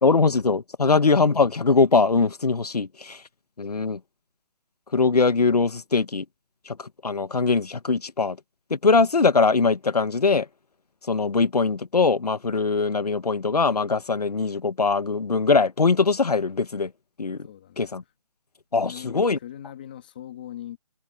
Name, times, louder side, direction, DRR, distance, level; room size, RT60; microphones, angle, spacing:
voice 1, 0.0-3.2 3.6-4.0 4.9-6.2 6.6-8.4 8.7-10.5 11.0-16.9 17.2-17.5 17.8-18.0 18.7-19.4, left 4 dB, 80° left, 1.6 m, -21 dB
voice 2, 17.4-18.0 18.9-20.8, left 11 dB, 15° left, 1.9 m, -40 dB
hypercardioid pair, 180°, 20 cm